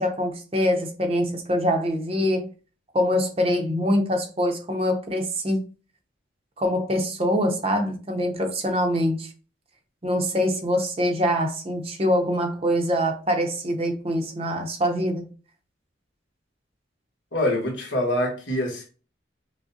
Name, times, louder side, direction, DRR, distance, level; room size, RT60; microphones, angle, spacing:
voice 1, 0.0-2.5 2.9-5.7 6.6-9.3 10.0-15.3, equal, 30° right, 0.7 m, -24 dB
voice 2, 17.3-18.8, left 1 dB, 70° left, 1.3 m, -25 dB
6.0 x 2.1 x 2.7 m
head